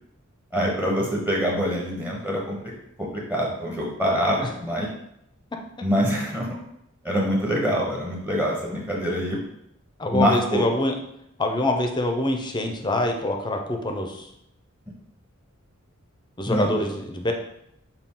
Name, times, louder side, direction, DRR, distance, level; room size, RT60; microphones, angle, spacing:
voice 1, 0.5-2.6 3.0-4.9 5.8-6.6 7.0-9.4 10.1-10.6 16.5-16.8, equal, 10° right, -3 dB, 0.8 m, -25 dB
voice 2, 10.0-11.0 11.4-14.3 16.4-17.3, left 1 dB, 20° left, 3 dB, 0.5 m, -25 dB
5.7 x 2.3 x 3.6 m, 0.77 s
head